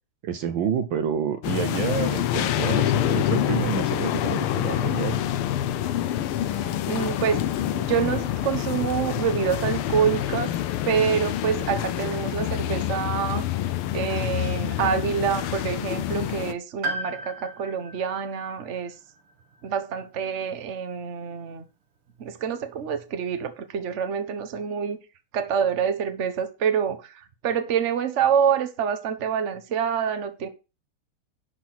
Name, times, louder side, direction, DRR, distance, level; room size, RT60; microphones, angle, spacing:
voice 1, 0.2-5.2, right 8 dB, 70° right, 1.4 m, -28 dB
sound 1, 1.4-16.5, left 12 dB, 85° left, 1.6 m, -26 dB
voice 2, 6.5-10.5 10.8-13.5 13.9-18.9 19.6-21.7 22.2-25.0 25.3-30.5, right 7 dB, 40° right, 1.2 m, -26 dB
Piano, 16.8-20.7 21.0-21.1 22.2-22.3, right 2 dB, 85° right, 2.4 m, -37 dB
11.5 x 4.5 x 5.9 m
omnidirectional pair, 2.4 m